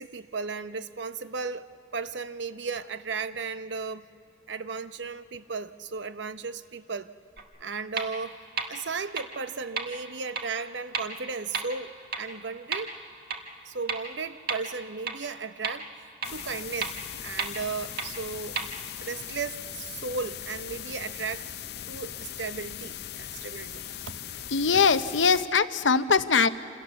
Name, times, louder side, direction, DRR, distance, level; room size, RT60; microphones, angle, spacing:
voice 1, 0.0-4.0 4.5-7.1 7.6-8.4 8.7-12.9 13.6-16.9 17.2-18.6 19.0-21.5 21.9-24.1, right 4 dB, 75° right, 12 dB, 0.8 m, -35 dB
sound 1, 7.4-7.5 8.0-8.1 8.6-8.7 9.2-9.3 9.8-9.9 10.3-10.4 10.9-11.0 11.5-11.6 12.1-12.2 12.7-12.8 13.3-13.4 13.9-14.0 14.5-14.6 15.1-15.2 15.6-15.7 16.2-16.3 16.8-16.9 17.4-17.5 18.0-18.1 18.6-18.7, right 5 dB, 50° right, 1.7 m, -30 dB
sound 2, 16.2-25.5, left 10 dB, 55° left, 0.6 m, -39 dB
voice 2, 24.5-26.5, left 5 dB, 85° left, 11 dB, 0.8 m, -22 dB
27.5 x 27.0 x 7.1 m, 2.4 s
head